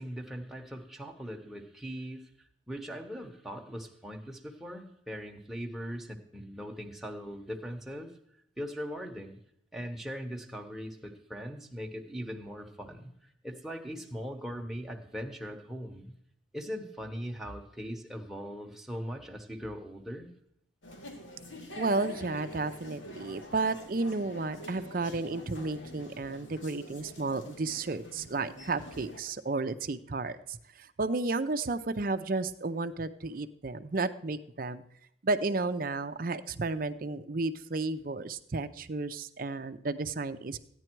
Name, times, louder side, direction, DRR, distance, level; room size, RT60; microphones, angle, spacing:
voice 1, 0.0-2.2 2.7-8.1 8.6-9.4 9.7-16.1 16.5-20.3, equal, ahead, 1 dB, 1.0 m, -40 dB
sound 1, 20.8-29.2, equal, 85° left, 2.3 m, -46 dB
voice 2, 21.8-34.8 35.2-40.6, right 3 dB, 50° right, 10 dB, 0.6 m, -32 dB
14.5 x 9.8 x 4.6 m, 0.73 s
head